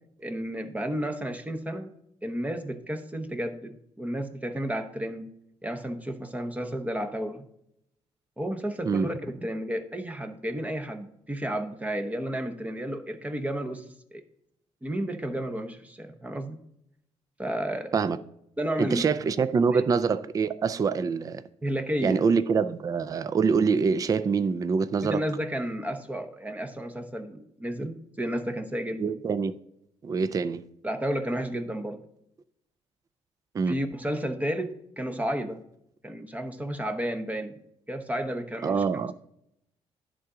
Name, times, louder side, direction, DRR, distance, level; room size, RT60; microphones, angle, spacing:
voice 1, 0.2-1.9 2.2-5.3 5.6-7.4 8.4-13.8 14.1-14.2 14.8-16.6 17.4-17.9 18.6-19.0 19.7-19.8 21.6-22.2 25.0-29.2 30.8-32.0 33.7-35.6 36.0-37.6 37.9-38.8, right 1 dB, 10° right, 0.8 m, -32 dB
voice 2, 18.8-21.4 22.0-25.2 29.0-29.6 30.0-30.6 33.5-33.8 38.6-39.1, right 5 dB, 30° right, 0.4 m, -25 dB
11.0 x 3.8 x 4.8 m
cardioid pair, 115°, 12 cm